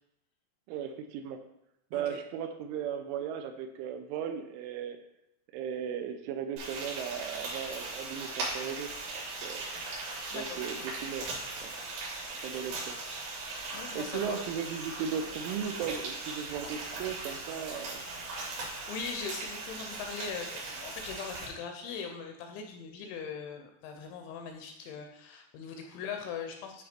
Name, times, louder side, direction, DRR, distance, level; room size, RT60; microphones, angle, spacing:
voice 1, 0.7-1.4 1.9-5.0 5.5-9.7 10.3-11.3 11.6-11.7 12.4-13.0 13.9-18.0, right 8 dB, 80° right, 7 dB, 3.0 m, -37 dB
Frying (food), 6.6-21.5, right 3 dB, 60° right, 4.6 m, -39 dB
voice 2, 10.3-10.9 13.7-14.4 18.6-26.9, left 6 dB, 80° left, 4 dB, 2.8 m, -41 dB
11.5 x 4.4 x 4.4 m, 0.81 s
omnidirectional pair, 5.7 m